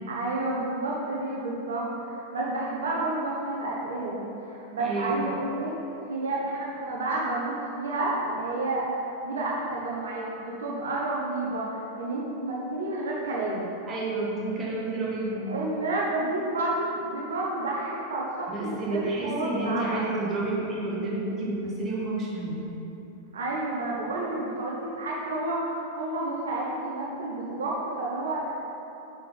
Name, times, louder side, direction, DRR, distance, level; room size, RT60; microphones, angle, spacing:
voice 1, 0.1-5.7 6.1-13.7 15.4-20.1 23.3-28.6, right 2 dB, 65° right, -4 dB, 0.9 m, -30 dB
voice 2, 4.8-5.2 13.9-15.5 18.5-22.6, right 2 dB, 25° right, -5 dB, 1.6 m, -30 dB
6.5 x 5.8 x 4.1 m, 3.0 s
figure-of-eight pair, 90°, 0 cm